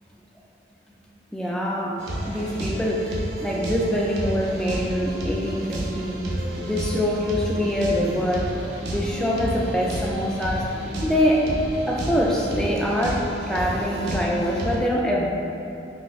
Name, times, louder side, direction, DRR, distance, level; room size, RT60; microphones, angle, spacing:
voice 1, 1.3-8.6 8.9-10.7 11.0-11.5 11.9-15.3, equal, 5° left, -3 dB, 0.3 m, -24 dB
sound 1, 2.0-14.8, right 1 dB, 75° right, 0.5 m, -31 dB
5.8 x 2.1 x 2.3 m, 2.8 s
head